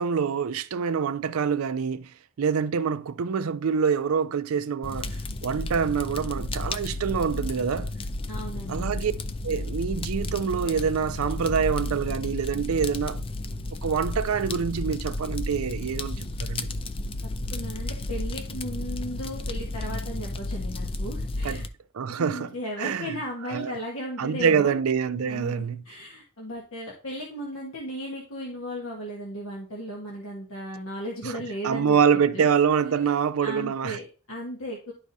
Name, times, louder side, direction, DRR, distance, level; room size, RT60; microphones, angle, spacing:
voice 1, 0.0-2.1 2.4-7.9 8.7-9.1 9.4-13.2 13.8-16.7 21.4-21.6 21.9-22.5 22.8-23.2 23.5-23.7 24.2-25.8 31.3-34.0, right 6 dB, 75° right, 0.4 m, -26 dB
Fire, 4.8-21.7, left 2 dB, 25° left, 0.4 m, -32 dB
voice 2, 8.3-8.9 17.5-21.6 22.2-24.7 25.1-32.0 32.3-32.5 33.4-34.9, equal, 70° left, 1.4 m, -36 dB
11.0 x 4.7 x 2.7 m
head